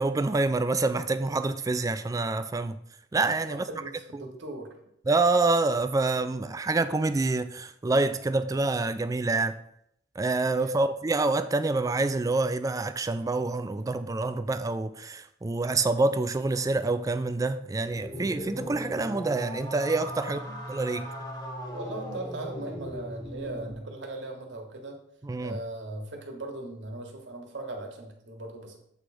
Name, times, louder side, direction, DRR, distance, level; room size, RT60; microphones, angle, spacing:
voice 1, 0.0-2.8 3.1-3.7 4.1-4.2 5.1-9.6 10.2-20.4 20.7-21.1 25.2-25.6, right 3 dB, 20° right, 0.3 m, -27 dB
voice 2, 3.5-4.7 10.5-10.9 18.2-18.4 20.2-20.6 21.7-25.0 25.4-28.8, right 2 dB, 85° right, 1.4 m, -39 dB
sound 1, 17.9-23.8, equal, 20° left, 1.0 m, -38 dB
7.8 x 3.2 x 4.9 m
head